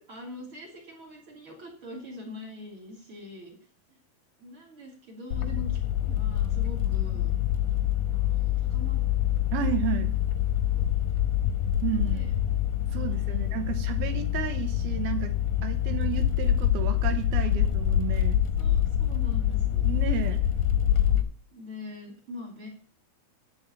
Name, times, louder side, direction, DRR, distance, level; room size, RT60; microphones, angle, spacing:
voice 1, 0.1-3.5 4.4-7.3 8.1-9.0 10.7-10.8 11.9-12.3 12.9-13.5 16.9-17.0 17.4-17.5 18.6-19.9 20.9-21.3 21.5-22.7, left 1 dB, 35° right, 0 dB, 3.4 m, -43 dB
sound 1, 5.3-21.2, left 11 dB, 70° left, 2.2 m, -26 dB
voice 2, 9.5-10.2 11.8-12.3 12.9-15.3 15.6-18.4 19.8-20.5, right 10 dB, 80° right, 8 dB, 2.8 m, -32 dB
11.5 x 4.6 x 8.3 m, 0.43 s
omnidirectional pair, 4.5 m